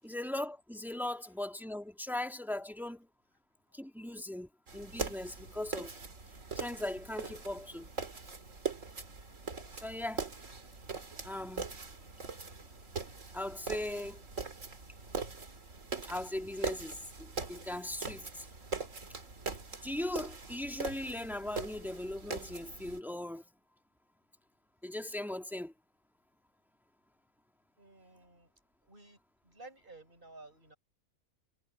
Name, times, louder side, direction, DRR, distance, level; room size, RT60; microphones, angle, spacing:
voice 1, 0.0-3.1 3.7-5.9 6.6-7.9 9.8-10.3 11.2-11.7 13.3-14.2 16.0-18.5 19.8-23.5 24.8-25.7, left 1 dB, ahead, 1.7 m, -39 dB
sound 1, 4.7-23.0, right 4 dB, 60° right, 3.0 m, -42 dB
voice 2, 27.8-28.5 28.8-30.8, right 2 dB, 35° right, 6.9 m, -54 dB
omnidirectional pair, 1.5 m